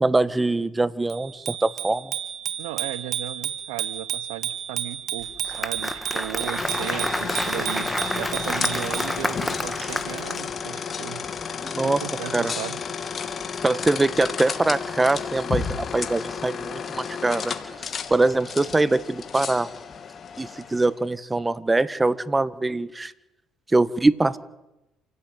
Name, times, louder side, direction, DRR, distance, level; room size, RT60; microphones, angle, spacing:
voice 1, 0.0-2.1 11.6-12.0 12.3-12.5 13.6-17.5 18.1-19.7 20.4-23.1 23.7-24.4, right 2 dB, 20° right, 16 dB, 1.4 m, -23 dB
Bicycle bell, 1.1-9.2, right 10 dB, 60° right, 2.2 m, -32 dB
voice 2, 2.6-11.3 11.8-12.8, right 17 dB, 85° right, 18 dB, 0.8 m, -36 dB
Applause, 5.2-10.4, left 1 dB, 5° left, 2.0 m, -29 dB
sound 1, 6.5-21.0, left 6 dB, 45° left, 2.8 m, -32 dB
28.0 x 16.5 x 9.4 m, 0.94 s
supercardioid pair, 70°, 0 cm